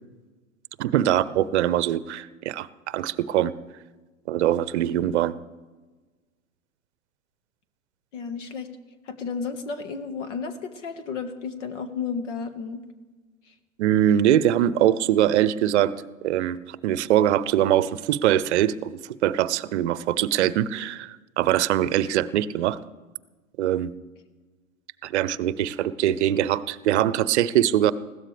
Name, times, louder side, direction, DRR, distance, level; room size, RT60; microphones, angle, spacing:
voice 1, 0.8-3.5 4.3-5.3 13.8-15.9 16.2-18.9 19.2-22.8 23.6-23.9 25.0-27.9, right 11 dB, 55° right, 18 dB, 0.8 m, -22 dB
voice 2, 8.1-8.7 9.0-12.8 13.5-13.6, left 5 dB, 60° left, 8 dB, 1.8 m, -32 dB
20.5 x 16.0 x 3.4 m, 1.3 s
hypercardioid pair, 105°, 41 cm